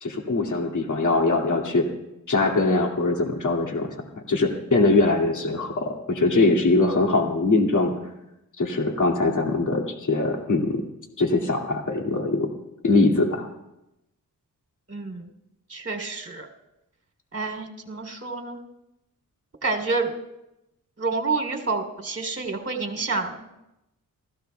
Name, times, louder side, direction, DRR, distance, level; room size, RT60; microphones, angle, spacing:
voice 1, 0.0-1.9 2.3-3.9 4.3-7.9 8.6-10.8 11.2-12.5 12.8-13.5, left 3 dB, 60° left, 0 dB, 2.5 m, -22 dB
voice 2, 14.9-15.3 15.7-16.5 17.3-18.6 19.6-20.1 21.0-23.4, right 3 dB, 40° right, 2 dB, 3.4 m, -28 dB
29.0 x 16.0 x 2.3 m, 0.90 s
cardioid pair, 65°, 34 cm